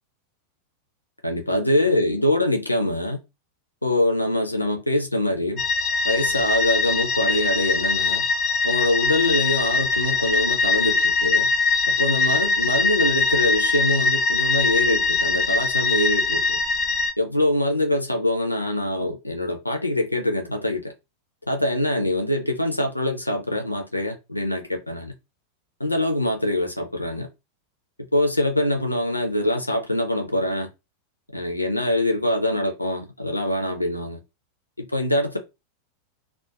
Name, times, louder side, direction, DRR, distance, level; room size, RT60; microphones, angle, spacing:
voice 1, 1.2-3.2 3.8-5.6 6.0-8.2 8.6-11.5 11.9-16.6 17.2-20.9 21.5-25.1 25.8-27.3 28.1-30.7 31.3-34.2 34.8-35.4, left 1 dB, 85° left, 0.4 m, -24 dB
sound 1, 5.6-17.1, left 3 dB, 30° left, 0.5 m, -22 dB
2.4 x 2.1 x 2.8 m
figure-of-eight pair, 90°, 0 cm